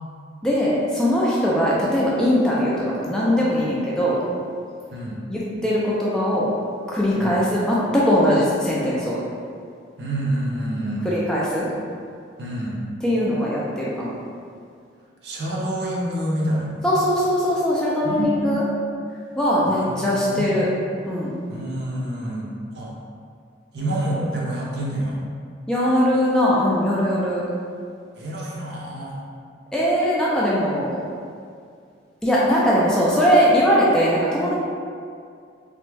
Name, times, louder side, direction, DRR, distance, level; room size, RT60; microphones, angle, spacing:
voice 1, 0.4-4.2 5.3-6.5 6.9-9.2 11.0-11.7 13.0-14.1 16.8-18.6 19.4-20.7 21.1-21.3 25.7-27.4 29.7-30.9 32.2-34.5, equal, 5° left, -7 dB, 0.3 m, -20 dB
voice 2, 10.0-11.1 12.4-12.8 15.2-16.8 18.0-18.6 19.6-20.5 21.5-22.5 22.7-22.9 23.7-25.2 28.2-29.1, right 1 dB, 60° right, -4 dB, 0.5 m, -27 dB
3.3 x 2.1 x 3.2 m, 2.3 s
head